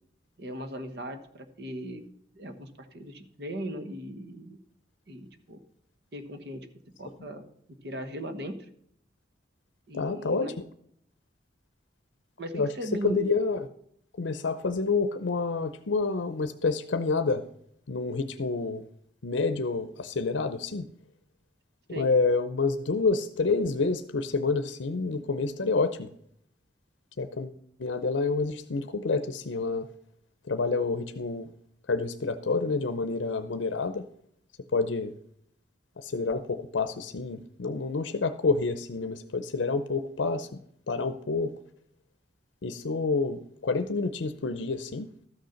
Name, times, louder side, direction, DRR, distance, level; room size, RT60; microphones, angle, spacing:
voice 1, 0.4-2.0 2.3-4.6 5.1-5.6 6.1-6.7 7.0-7.4 7.8-8.6 9.9-10.6 12.4-13.2 21.9-22.1, equal, 60° right, 8 dB, 1.2 m, -38 dB
voice 2, 9.9-10.5 12.5-13.7 14.2-17.4 17.9-18.8 19.2-20.9 22.0-26.1 27.2-29.9 30.5-31.5 31.9-34.0 34.7-35.1 36.0-40.6 40.9-41.5 42.6-45.1, left 4 dB, 85° left, 10 dB, 0.6 m, -28 dB
13.0 x 6.6 x 5.7 m, 0.69 s
head